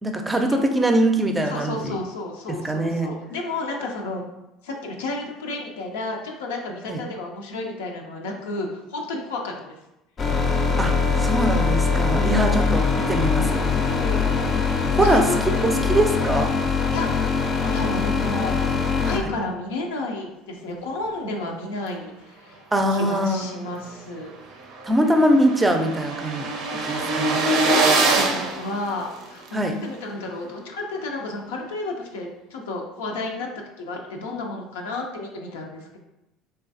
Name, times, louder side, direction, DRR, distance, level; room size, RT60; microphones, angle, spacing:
voice 1, 0.0-2.0 2.5-3.1 6.9-7.0 10.8-10.9 11.2-13.6 14.9-16.5 19.1-19.2 22.7-23.5 24.8-27.4 29.5-29.7, right 1 dB, 15° right, 4 dB, 0.4 m, -22 dB
voice 2, 1.5-4.2 4.6-9.8 12.1-12.7 13.9-14.5 15.0-15.4 15.7-15.9 16.9-17.2 17.5-22.6 22.9-24.3 27.7-33.5 33.8-36.0, left 2 dB, 90° left, 1 dB, 0.4 m, -32 dB
sound 1, 10.2-19.2, left 5 dB, 40° left, 0.5 m, -22 dB
sound 2, 23.9-24.0 24.3-24.4 24.6-29.5, right 3 dB, 70° right, 0.5 m, -24 dB
3.1 x 2.3 x 2.6 m, 0.91 s
supercardioid pair, 85°, 0 cm